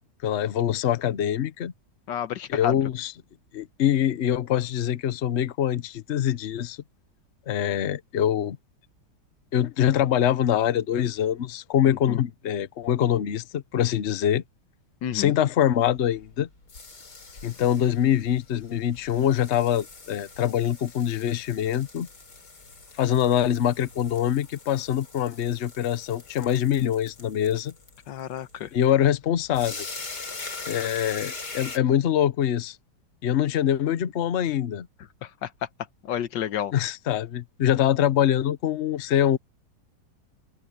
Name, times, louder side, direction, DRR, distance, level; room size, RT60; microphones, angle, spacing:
voice 1, 0.2-1.7 2.5-3.1 3.5-6.8 7.5-8.6 9.5-14.4 15.1-16.5 17.4-22.1 23.0-27.7 28.7-29.9 30.7-32.8 33.2-34.9 36.7-39.4, left 10 dB, 50° left, 1.0 m, -24 dB
voice 2, 2.1-2.7 11.9-12.2 15.0-15.3 28.1-28.7 35.2-35.5 36.0-36.7, left 10 dB, 85° left, 1.6 m, -30 dB
sound 1, 15.9-31.8, left 3 dB, 65° left, 3.8 m, -42 dB
open air
omnidirectional pair, 1.9 m